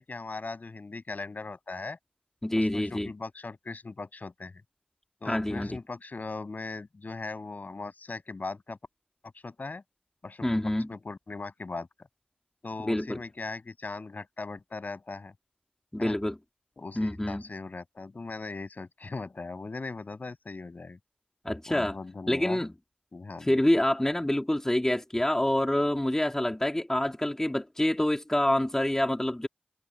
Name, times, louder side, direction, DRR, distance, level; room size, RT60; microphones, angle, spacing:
voice 1, 0.0-2.0 2.6-4.5 5.2-8.8 9.4-9.8 10.2-11.9 12.6-15.3 16.0-16.2 16.8-21.0 21.7-22.6 23.1-23.6, left 3 dB, 60° left, 7.1 m, -39 dB
voice 2, 2.4-3.1 5.3-5.8 10.4-10.9 12.9-13.2 15.9-16.4 17.0-17.4 21.4-21.9 22.3-22.7 23.4-29.5, left 1 dB, 15° left, 2.3 m, -27 dB
wide cardioid pair, 75°, 3 cm